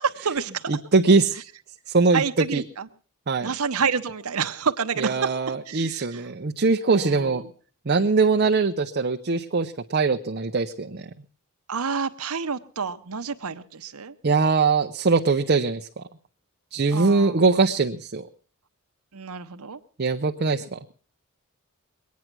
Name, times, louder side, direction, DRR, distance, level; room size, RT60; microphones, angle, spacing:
voice 1, 0.0-0.7 2.1-2.9 3.4-5.4 5.7-6.3 6.9-7.4 11.7-14.1 16.9-17.4 19.1-19.8, right 6 dB, 75° right, 9 dB, 0.9 m, -28 dB
voice 2, 0.7-1.3 1.9-2.6 3.3-3.5 5.0-7.4 7.9-11.1 14.2-15.9 16.7-18.2 20.0-20.8, right 4 dB, 45° right, 4 dB, 0.7 m, -22 dB
22.0 x 9.4 x 6.0 m, 0.43 s
head